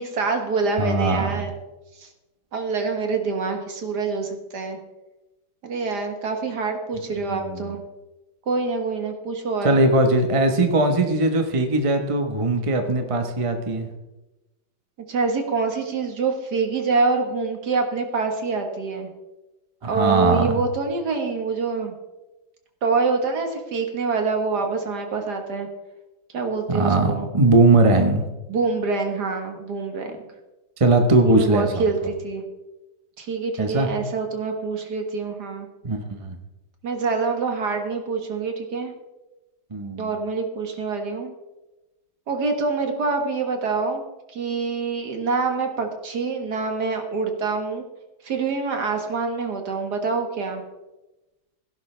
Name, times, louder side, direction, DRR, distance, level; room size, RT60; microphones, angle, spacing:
voice 1, 0.0-1.5 2.0-2.1 2.5-4.8 5.6-7.8 8.5-9.8 15.1-19.1 19.9-21.9 22.8-25.7 26.3-27.3 28.5-30.2 31.3-32.4 33.2-35.7 36.8-38.9 40.0-41.3 42.3-47.9 48.2-50.6, right 4 dB, 55° right, 4 dB, 2.0 m, -26 dB
voice 2, 0.8-1.4 7.3-7.7 9.6-13.9 19.8-20.6 26.7-28.2 30.8-31.9 33.6-33.9 35.8-36.4 39.7-40.1, right 2 dB, 25° right, 5 dB, 0.8 m, -20 dB
16.5 x 11.0 x 3.3 m, 1.0 s
omnidirectional pair, 2.2 m